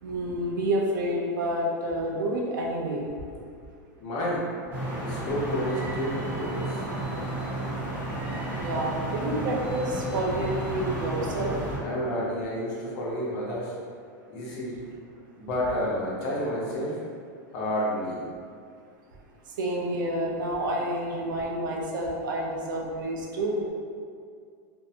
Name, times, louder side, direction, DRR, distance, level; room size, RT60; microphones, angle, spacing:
voice 1, 0.0-3.1 8.6-11.5 19.6-23.6, right 1 dB, 85° right, -1 dB, 0.5 m, -29 dB
voice 2, 4.0-4.5 5.0-6.8 11.8-13.7 14.3-14.8 15.4-17.0 17.5-18.2, equal, 45° left, -6 dB, 0.8 m, -30 dB
sound 1, 4.7-11.8, right 1 dB, 20° right, 0.8 m, -32 dB
2.6 x 2.0 x 2.7 m, 2.2 s
supercardioid pair, 140°, 10 cm